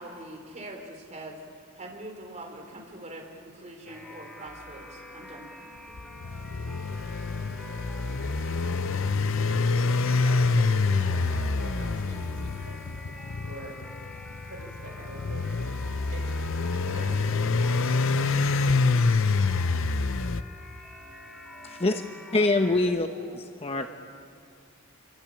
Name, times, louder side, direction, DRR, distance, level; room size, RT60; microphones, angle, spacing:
voice 1, 0.0-1.4 1.8-5.5, right 1 dB, 35° right, 1 dB, 4.3 m, -43 dB
sound 1, 3.9-22.8, left 1 dB, 5° left, 5.1 m, -46 dB
sound 2, 5.9-20.4, left 3 dB, 60° left, 0.7 m, -26 dB
voice 2, 9.4-12.8 13.5-13.8 14.5-15.5 16.1-16.3 16.6-17.7 22.8-23.2 23.7-23.8, right 1 dB, 70° right, 1 dB, 5.7 m, -44 dB
voice 3, 21.6-22.0 22.3-23.1 23.6-23.9, left 2 dB, 30° left, 6 dB, 0.9 m, -24 dB
27.5 x 24.0 x 8.8 m, 2.2 s
head